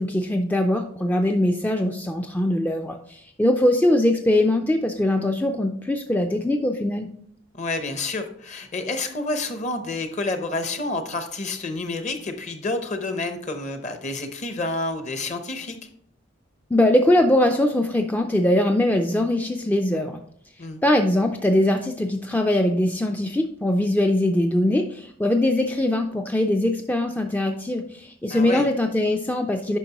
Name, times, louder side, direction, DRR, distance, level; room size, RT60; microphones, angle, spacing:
voice 1, 0.0-7.1 16.7-20.2 20.8-29.8, left 1 dB, 10° left, 4 dB, 0.3 m, -21 dB
voice 2, 7.5-15.8 20.6-20.8 28.3-28.7, left 2 dB, 35° left, 7 dB, 0.8 m, -29 dB
9.0 x 5.7 x 2.9 m, 0.64 s
head